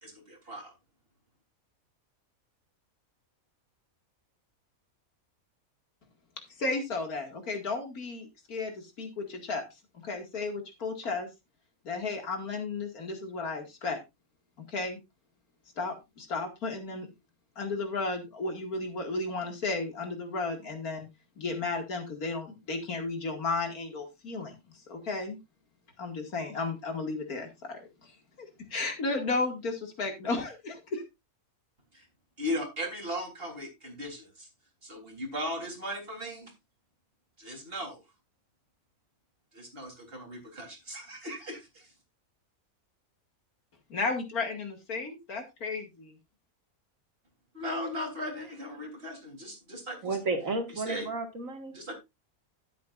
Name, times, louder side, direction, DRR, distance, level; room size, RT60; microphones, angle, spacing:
voice 1, 0.0-0.7 31.9-32.1 32.4-34.5 34.8-36.5 37.4-38.0 39.5-41.9 47.5-50.2 50.7-51.1 51.7-51.9, equal, 40° right, 1 dB, 3.8 m, -37 dB
voice 2, 6.6-9.6 10.0-11.3 11.8-14.0 14.7-15.0 15.8-17.1 17.6-21.1 21.4-24.6 24.9-25.4 26.0-28.1 28.4-31.0 43.9-46.2, left 3 dB, 90° left, 5 dB, 2.6 m, -34 dB
voice 3, 50.0-51.7, right 3 dB, 65° right, 5 dB, 2.3 m, -32 dB
12.0 x 10.0 x 2.5 m, 0.22 s
omnidirectional pair, 1.5 m